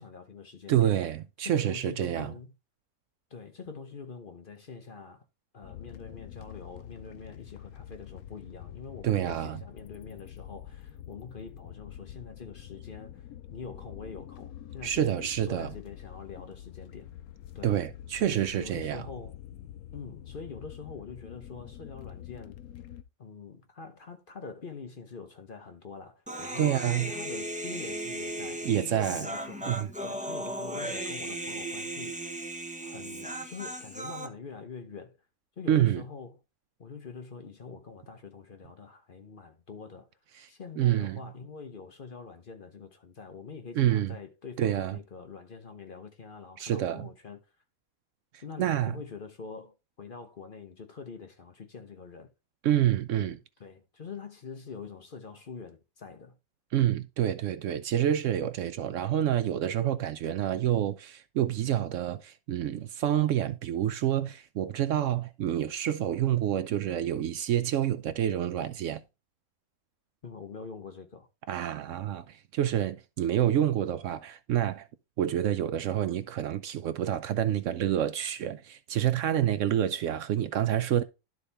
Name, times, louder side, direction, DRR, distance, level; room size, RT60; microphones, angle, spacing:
voice 1, 0.0-0.9 1.4-2.5 3.3-5.2 5.5-17.1 17.5-17.8 18.2-19.4 19.9-22.6 23.2-32.5 32.8-35.2 35.6-36.4 36.8-40.1 40.5-47.4 48.4-52.3 53.2-56.4 70.2-71.3, left 5 dB, 45° left, 0.9 m, -44 dB
voice 2, 0.7-2.3 9.0-9.6 14.8-15.7 17.6-19.1 26.6-27.1 28.6-29.3 29.7-29.9 35.7-36.0 40.4-40.5 40.8-41.2 43.8-44.1 44.6-45.0 46.6-47.1 48.3-49.0 52.6-53.4 56.7-69.0 71.5-74.9 75.2-81.0, right 11 dB, 70° right, 0.8 m, -28 dB
sound 1, 5.6-23.0, left 11 dB, 85° left, 1.1 m, -46 dB
Human voice, 26.3-34.3, right 1 dB, 10° right, 0.6 m, -36 dB
12.0 x 4.2 x 3.4 m
omnidirectional pair, 1.5 m